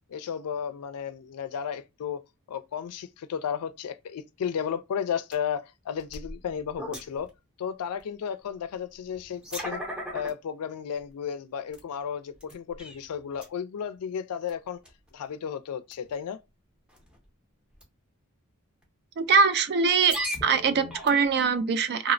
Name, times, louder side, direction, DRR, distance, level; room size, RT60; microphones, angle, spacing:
voice 1, 0.1-2.2 2.5-7.3 7.6-9.8 10.1-14.8 15.1-16.4, left 7 dB, 80° left, 0.3 m, -33 dB
sound 1, 5.3-5.4 6.0-7.3 8.0-8.1 9.1-10.3 10.9-11.0 11.7-11.8 12.3-13.0 13.3-13.5 14.5-14.6 14.8-15.1 15.9-16.1 16.9-17.2 17.7-17.8 18.8-18.9 19.9-21.4, equal, 5° right, 0.6 m, -37 dB
voice 2, 19.2-20.2 20.4-22.1, right 5 dB, 50° right, 0.3 m, -22 dB
2.7 x 2.0 x 2.5 m
head